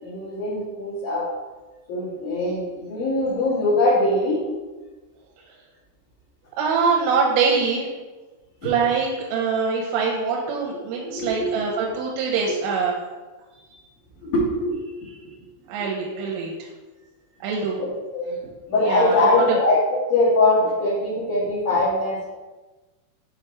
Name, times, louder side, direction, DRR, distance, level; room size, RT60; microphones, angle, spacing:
voice 1, 0.0-1.3 1.9-4.5 8.6-8.7 10.7-11.7 12.5-12.6 14.2-15.2 17.8-18.4 18.7-22.3, left 2 dB, 55° left, -11 dB, 2.4 m, -22 dB
voice 2, 6.6-7.9 8.6-13.0 15.7-16.5 17.4-17.8 18.8-19.6, right 5 dB, 85° right, -2 dB, 3.4 m, -24 dB
7.9 x 4.0 x 3.4 m, 1.2 s
omnidirectional pair, 5.7 m